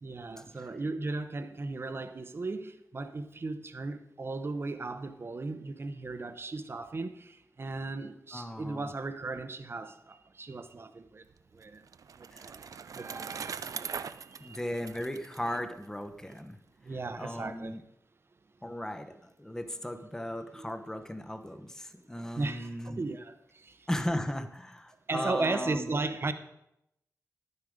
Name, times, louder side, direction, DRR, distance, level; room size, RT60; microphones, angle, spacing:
voice 1, 0.0-11.2 11.5-11.8 12.2-14.6 16.8-17.7 20.5-20.7 22.4-23.9 25.1-26.3, right 3 dB, 40° right, 0.8 m, -36 dB
voice 2, 8.3-8.9 12.3-12.5 14.4-16.6 17.2-17.8 18.6-23.0 23.9-26.0, left 1 dB, 10° left, 0.8 m, -36 dB
Bicycle, 11.3-16.4, right 6 dB, 75° right, 0.4 m, -42 dB
11.5 x 9.6 x 5.0 m
wide cardioid pair, 135°, 6 cm